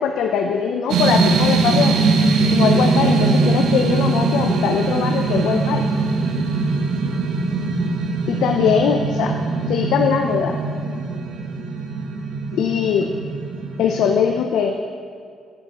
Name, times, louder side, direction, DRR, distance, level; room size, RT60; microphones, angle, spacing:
voice 1, 0.0-2.0 2.5-5.8 8.3-9.3 9.7-10.6 12.5-13.1 13.8-14.8, left 7 dB, 80° left, 3 dB, 0.4 m, -21 dB
sound 1, 0.9-14.3, right 3 dB, 80° right, 0.6 m, -21 dB
9.8 x 5.2 x 2.9 m, 2.2 s
cardioid pair, 90°, 0 cm